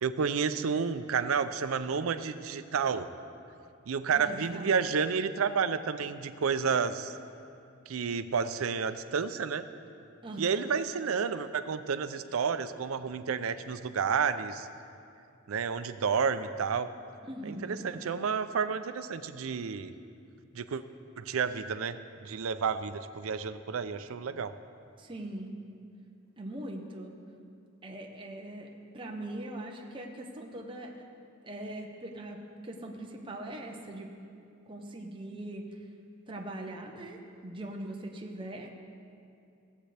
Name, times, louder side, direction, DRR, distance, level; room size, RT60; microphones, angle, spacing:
voice 1, 0.0-3.1 3.9-7.2 7.9-9.6 10.4-14.7 15.5-16.9 17.4-19.9 20.5-20.8 21.2-24.5, right 6 dB, 90° right, 12 dB, 0.5 m, -30 dB
voice 2, 4.1-4.8 10.2-10.7 17.3-17.8 25.0-25.6 26.4-27.2 27.8-31.1 31.4-34.1 34.7-35.7 36.3-38.7, right 1 dB, 25° right, 1 dB, 0.8 m, -41 dB
17.0 x 7.6 x 3.4 m, 2.5 s
head